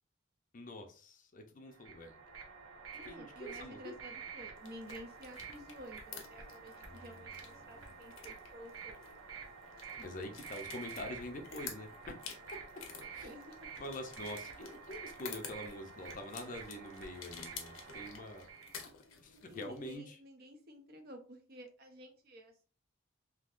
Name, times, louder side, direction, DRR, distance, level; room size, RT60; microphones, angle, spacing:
voice 1, 0.5-2.2 3.0-4.0 6.9-7.9 10.0-11.9 13.1-13.3 13.8-18.5 19.2-20.2, left 1 dB, 40° left, 5 dB, 0.5 m, -46 dB
sound 1, 1.7-18.8, right 6 dB, 80° right, 0.8 m, -50 dB
voice 2, 2.9-9.0 13.2-13.6 19.5-22.7, equal, 50° right, 5 dB, 0.6 m, -52 dB
sound 2, 4.5-20.0, left 6 dB, 80° left, 0.7 m, -52 dB
3.6 x 2.8 x 2.4 m, 0.37 s
head